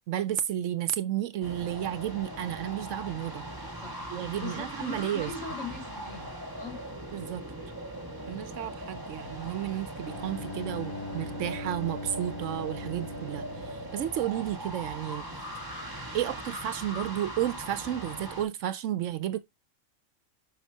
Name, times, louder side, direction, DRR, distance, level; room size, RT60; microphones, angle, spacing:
voice 1, 0.1-3.5 4.1-5.3 7.1-7.4 8.3-15.3 16.1-19.4, right 11 dB, 75° right, 0.9 m, -32 dB
sound 1, 1.4-18.4, right 1 dB, 15° right, 1.7 m, -40 dB
voice 2, 3.8-4.1 4.4-6.3 6.6-6.8, left 4 dB, 75° left, 3.7 m, -40 dB
Bowed string instrument, 9.9-14.8, left 2 dB, 20° left, 3.9 m, -41 dB
7.5 x 5.7 x 2.7 m
omnidirectional pair, 1.3 m